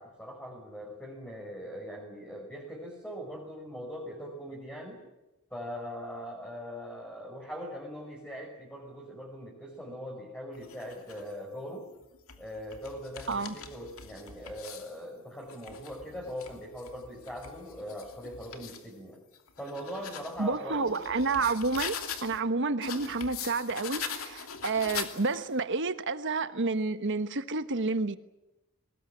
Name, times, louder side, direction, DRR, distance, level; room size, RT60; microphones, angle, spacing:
voice 1, 0.0-5.0 5.5-11.9 12.4-19.2 19.6-21.0, equal, 5° left, 5.6 m, -41 dB
sound 1, 10.5-11.3 12.0-15.0 15.4-18.9 19.3-22.4 22.8-25.6, left 7 dB, 75° left, 2.8 m, -42 dB
voice 2, 20.4-28.2, right 3 dB, 60° right, 1.3 m, -30 dB
23.5 x 20.5 x 9.9 m
head